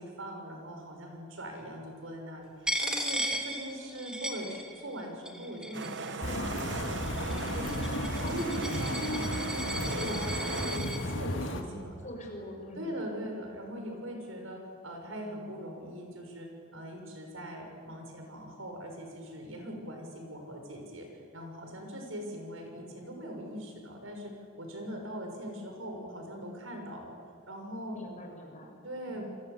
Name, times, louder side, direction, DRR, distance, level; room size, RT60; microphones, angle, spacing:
voice 1, 0.0-7.0 7.3-7.8 8.2-9.2 9.5-11.9 12.8-24.3 24.6-27.1 27.5-28.0 28.8-29.2, equal, 70° right, 2 dB, 6.5 m, -41 dB
Coin (dropping), 2.7-5.0 5.3-6.1 6.8-11.0, equal, 5° right, 2.8 m, -36 dB
sound 1, 5.7-10.8, right 5 dB, 55° right, 1.1 m, -39 dB
sound 2, 6.2-11.6, left 1 dB, 60° left, 2.5 m, -34 dB
voice 2, 11.6-13.0 27.9-28.8 29.1-29.2, equal, 35° left, 1 dB, 6.4 m, -44 dB
28.0 x 23.5 x 8.4 m, 2.3 s
head